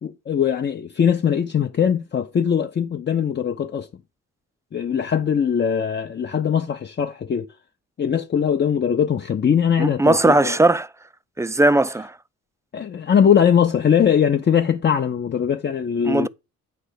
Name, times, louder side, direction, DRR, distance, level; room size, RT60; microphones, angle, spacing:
voice 1, 0.0-3.9 4.7-7.5 8.0-10.6 12.7-16.3, left 8 dB, 35° left, 0.7 m, -21 dB
voice 2, 9.8-10.9 11.4-12.1 16.1-16.3, right 2 dB, 10° right, 0.3 m, -18 dB
8.9 x 3.4 x 6.5 m
cardioid pair, 90°, 30 cm